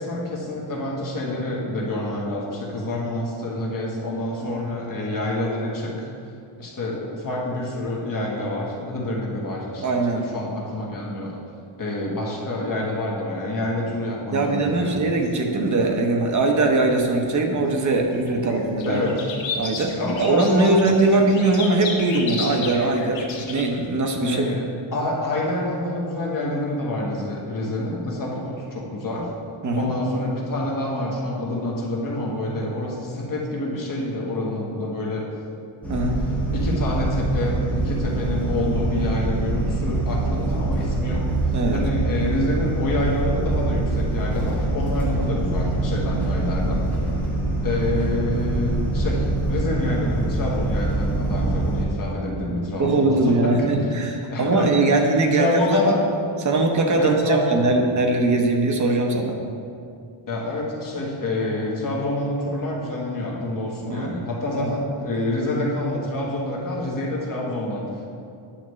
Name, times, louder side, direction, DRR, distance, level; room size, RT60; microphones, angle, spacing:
voice 1, 0.0-6.1 6.6-9.8 10.1-11.4 11.8-15.0 18.9-19.1 20.0-21.0 24.2-24.6 24.9-29.3 29.7-35.2 36.5-46.9 47.6-53.5 54.3-54.7 55.0-56.0 57.0-57.7 60.3-68.1, left 1 dB, 40° left, -3 dB, 1.3 m, -27 dB
voice 2, 9.8-10.3 14.3-19.0 19.6-24.5 29.6-29.9 35.9-36.2 41.5-41.8 52.5-55.9 56.4-59.4 63.9-64.2 64.5-64.8, right 2 dB, 35° right, 2 dB, 0.8 m, -21 dB
sound 1, 14.4-16.9 17.3-23.8, left 4 dB, 65° left, 1.2 m, -34 dB
sound 2, 35.8-51.8, right 2 dB, 5° left, 1.2 m, -24 dB
9.9 x 5.9 x 3.1 m, 2.5 s
wide cardioid pair, 155°, 49 cm